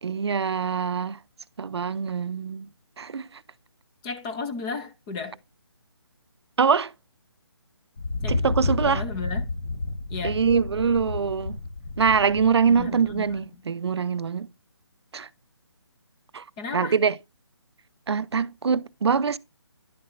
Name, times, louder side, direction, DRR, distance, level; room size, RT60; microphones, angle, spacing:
voice 1, 0.0-1.2 1.6-2.7 3.0-3.4 6.6-6.9 8.3-9.1 10.2-11.6 12.0-14.5 15.1-15.3 16.3-16.4 16.7-17.2 18.1-19.4, right 6 dB, 70° right, 0.5 m, -24 dB
voice 2, 4.0-5.4 8.2-8.3 8.9-9.5 10.1-10.4 12.8-13.2 16.6-17.0, left 4 dB, 10° left, 0.5 m, -33 dB
Thunder, 8.0-13.4, left 3 dB, 55° left, 1.2 m, -31 dB
10.5 x 6.4 x 2.5 m
figure-of-eight pair, 155°, 14 cm